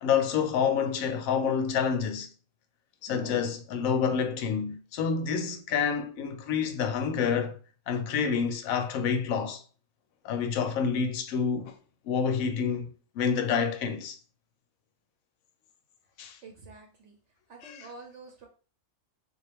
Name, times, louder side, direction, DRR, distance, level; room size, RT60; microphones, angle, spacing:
voice 1, 0.0-2.3 3.0-7.6 7.9-9.6 10.2-11.7 12.0-14.2 16.2-16.4 17.6-17.9, left 6 dB, 80° left, 1.0 m, -28 dB
voice 2, 16.4-17.2 17.5-18.5, right 3 dB, 60° right, 1.0 m, -48 dB
3.7 x 2.4 x 3.4 m
omnidirectional pair, 1.4 m